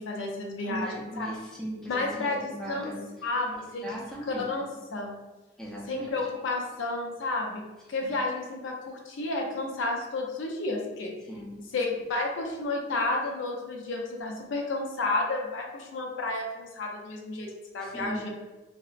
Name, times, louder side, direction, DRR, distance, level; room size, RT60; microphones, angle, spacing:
voice 1, 0.0-0.9 1.2-1.3 1.9-2.9 3.2-3.9 4.3-4.6 4.9-5.1 5.9-11.1 11.7-17.5 17.7-18.3, left 2 dB, 85° left, 0 dB, 0.5 m, -31 dB
voice 2, 0.6-3.3 3.6-4.8 5.6-6.2 8.0-8.1 11.3-11.6 17.8-18.2, equal, 5° left, -5 dB, 0.5 m, -39 dB
2.7 x 2.0 x 2.4 m, 1.1 s
head